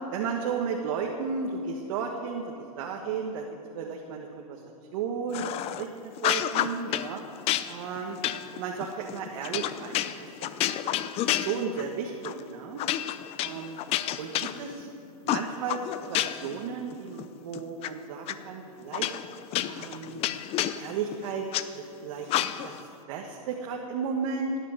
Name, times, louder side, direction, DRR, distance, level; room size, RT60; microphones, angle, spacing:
voice 1, 0.1-2.4 2.8-3.5 3.7-4.6 4.9-5.5 6.2-7.2 7.7-8.2 8.5-10.5 10.8-10.9 11.3-12.8 13.4-13.8 14.2-14.9 15.2-19.1 19.6-20.2 20.7-21.4 21.7-22.7 23.1-24.6, right 5 dB, 60° right, 1 dB, 1.6 m, -34 dB
sound 1, 5.3-5.8 6.2-7.1 7.5-11.9 12.2-12.4 12.8-14.9 15.3-16.6 16.9-17.9 18.3-18.4 18.9-21.7 22.3-22.8, left 12 dB, 35° left, 0.6 m, -30 dB
17.0 x 10.0 x 6.5 m, 2.6 s
supercardioid pair, 135°, 19 cm